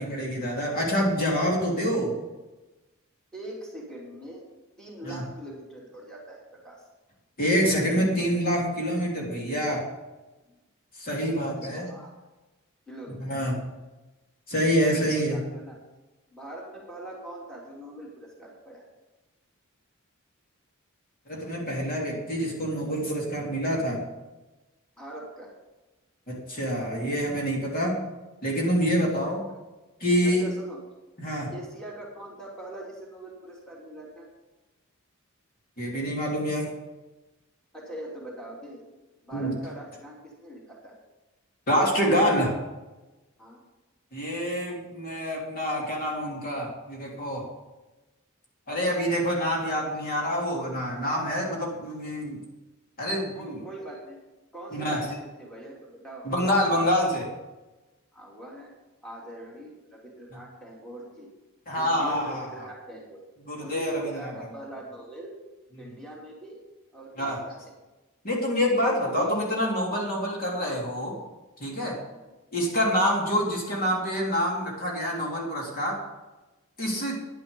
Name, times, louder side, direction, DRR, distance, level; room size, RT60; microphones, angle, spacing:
voice 1, 0.0-2.1 5.0-5.2 7.4-9.8 11.0-11.9 13.2-13.6 14.5-15.4 21.3-24.0 26.3-28.0 28.4-29.4 30.0-30.5 31.2-31.5 35.8-36.7 39.3-39.5 41.7-42.5 44.1-47.4 48.7-52.4 53.0-53.6 54.7-55.0 56.2-57.3 61.7-62.7 63.4-64.3 65.8-65.9 67.2-67.4 68.2-71.2 71.6-72.0 72.5-76.0 76.8-77.2, equal, 45° left, -3 dB, 3.2 m, -26 dB
voice 2, 3.3-4.4 4.8-6.8 11.3-12.1 12.9-13.2 14.6-15.8 16.3-18.8 25.0-25.5 30.2-30.8 31.5-34.3 37.7-38.8 39.2-40.9 43.4-43.6 53.3-54.2 54.5-56.3 58.1-58.7 59.0-61.3 61.7-63.2 63.6-65.3 65.8-66.6 66.9-67.6 68.7-69.3 72.1-72.3 76.9-77.2, right 1 dB, 5° left, -5 dB, 2.9 m, -42 dB
10.5 x 10.5 x 5.3 m, 1.1 s
head